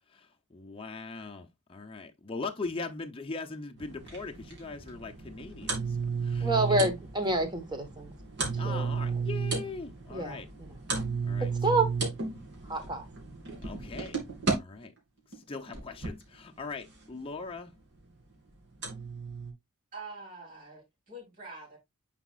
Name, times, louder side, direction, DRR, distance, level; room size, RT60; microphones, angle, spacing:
voice 1, 0.5-5.8 6.2-6.5 8.5-10.5 11.2-11.5 13.6-14.1 14.5-14.9 15.5-17.7, left 4 dB, 25° left, 0.6 m, -40 dB
sound 1, 3.8-14.5 15.3-16.2 17.4-17.5 18.0-18.1 18.8-19.5, right 5 dB, 55° right, 2.5 m, -34 dB
voice 2, 6.4-8.1 8.6-9.2 10.1-10.7 11.6-11.9 12.7-13.1, right 2 dB, 20° right, 1.2 m, -29 dB
voice 3, 19.9-21.8, right 3 dB, 35° right, 3.6 m, -45 dB
9.7 x 4.1 x 2.4 m
head